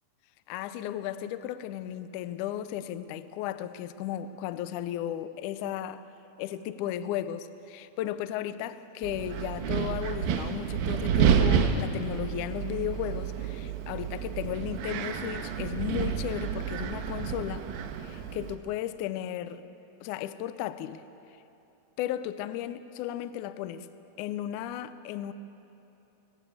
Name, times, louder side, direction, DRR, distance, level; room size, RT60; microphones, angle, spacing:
voice 1, 0.5-6.0 6.4-17.7 18.0-19.6 20.0-21.0 22.0-23.9 24.2-25.3, left 11 dB, 85° left, 13 dB, 1.7 m, -35 dB
Wind, 9.0-18.6, right 8 dB, 75° right, 2.7 m, -29 dB
20.0 x 17.0 x 8.1 m, 2.9 s
omnidirectional pair, 4.4 m